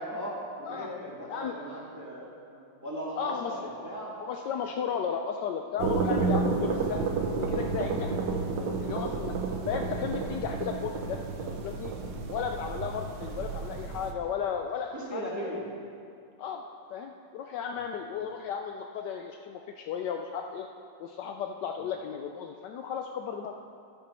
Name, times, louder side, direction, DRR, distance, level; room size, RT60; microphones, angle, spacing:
voice 1, 0.0-4.1 4.5-4.6 14.9-15.6 18.2-18.3, equal, 10° right, -7 dB, 1.9 m, -38 dB
voice 2, 3.2-3.5 4.2-8.2 8.8-9.3 9.7-11.9 12.3-15.2 16.4-16.6 16.9-20.7 21.0-23.5, left 7 dB, 85° left, 4 dB, 0.9 m, -34 dB
sound 1, 5.8-14.1, right 4 dB, 65° right, 1.4 m, -31 dB
14.5 x 6.9 x 4.3 m, 2.5 s
omnidirectional pair, 2.4 m